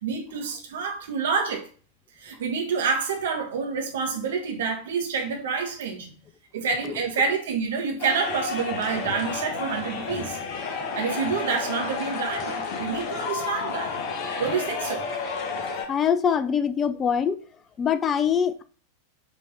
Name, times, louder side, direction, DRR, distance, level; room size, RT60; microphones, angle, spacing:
voice 1, 0.0-1.7 2.2-6.1 6.5-10.4 10.9-14.0 14.4-15.1, right 5 dB, 60° right, 1.4 m, -28 dB
sound 1, 8.0-15.9, left 5 dB, 40° left, 1.4 m, -31 dB
voice 2, 15.9-17.4 17.8-18.6, left 7 dB, 25° left, 0.5 m, -23 dB
5.3 x 3.4 x 5.5 m
figure-of-eight pair, 90°, 0 cm